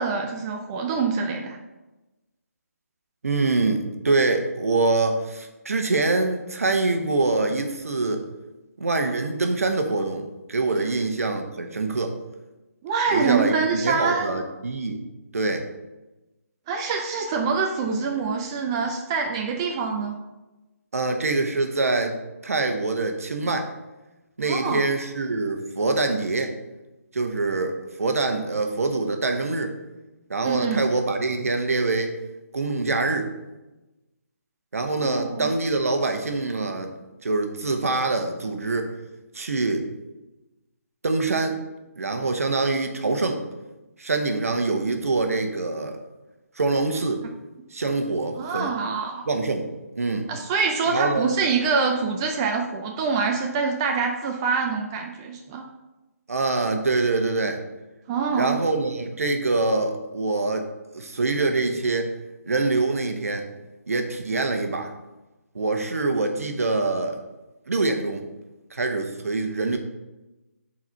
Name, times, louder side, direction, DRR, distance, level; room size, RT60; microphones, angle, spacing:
voice 1, 0.0-1.6 12.8-14.3 16.7-20.2 24.5-24.8 30.4-30.8 35.0-35.5 48.4-49.2 50.3-55.6 58.1-58.6, right 5 dB, 20° right, 2 dB, 0.4 m, -25 dB
voice 2, 3.2-8.2 8.8-12.1 13.1-15.0 15.3-15.7 20.9-22.2 22.4-23.7 24.4-26.5 27.1-29.7 30.3-32.1 32.5-33.3 34.7-36.9 37.2-38.9 39.3-39.8 41.0-41.6 42.0-43.4 44.0-46.0 46.6-47.2 47.7-48.7 49.3-49.7 49.9-50.3 50.9-51.3 56.3-57.6 58.3-60.7 60.9-62.1 62.5-63.5 63.9-64.9 65.5-67.2 67.7-68.2 68.7-69.8, right 3 dB, 65° right, 5 dB, 0.9 m, -24 dB
4.8 x 4.2 x 5.2 m, 1.0 s
figure-of-eight pair, 145°, 9 cm